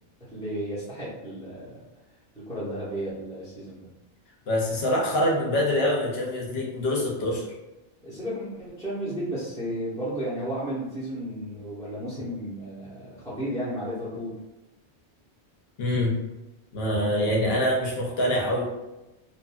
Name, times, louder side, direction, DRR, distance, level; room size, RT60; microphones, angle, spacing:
voice 1, 0.2-1.8 2.5-3.9 8.0-14.3 17.1-17.5, equal, 5° left, -10 dB, 0.7 m, -33 dB
voice 2, 4.5-7.4 15.8-16.2 16.7-18.6, left 1 dB, 70° left, -2 dB, 0.9 m, -25 dB
2.9 x 2.5 x 2.2 m, 1.0 s
omnidirectional pair, 1.2 m